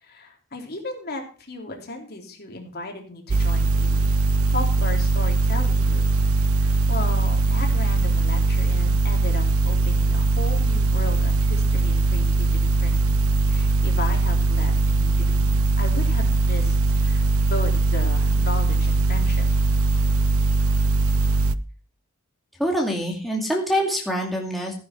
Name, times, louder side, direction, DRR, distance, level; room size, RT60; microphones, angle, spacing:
voice 1, 0.0-4.0 4.5-6.3 6.6-13.1 13.5-16.8 17.0-19.5, left 2 dB, 45° left, 2 dB, 3.4 m, -35 dB
sound 1, 3.3-21.6, right 3 dB, 70° right, 0.7 m, -20 dB
voice 2, 22.6-24.7, equal, ahead, -1 dB, 2.4 m, -25 dB
15.5 x 10.5 x 4.5 m, 0.38 s
head